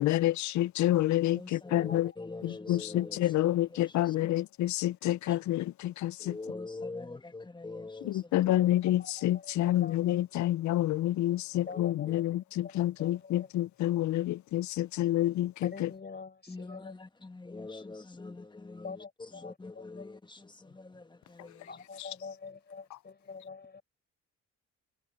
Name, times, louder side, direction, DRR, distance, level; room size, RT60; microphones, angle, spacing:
voice 1, 0.0-2.1 2.4-6.4 8.1-15.9 22.0-22.1, left 14 dB, 70° left, 0.6 m, -28 dB
voice 2, 1.3-4.4 5.3-5.4 6.2-8.6 11.6-12.2 16.5-21.7, left 3 dB, 15° left, 1.6 m, -44 dB
voice 3, 8.8-10.0 11.7-12.3 12.6-13.5 15.6-16.9 18.8-20.0 20.7-20.8 21.7-23.8, left 4 dB, 35° left, 5.2 m, -46 dB
cardioid pair, 90°, 30 cm